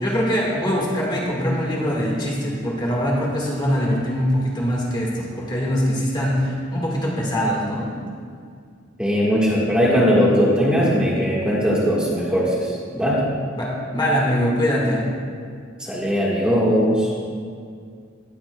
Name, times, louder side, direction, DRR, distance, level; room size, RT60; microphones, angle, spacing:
voice 1, 0.0-7.9 13.6-15.0, equal, 25° left, -4 dB, 1.7 m, -22 dB
voice 2, 9.0-13.2 15.8-17.1, equal, 5° right, -7 dB, 1.5 m, -19 dB
19.0 x 7.3 x 2.3 m, 2.2 s
head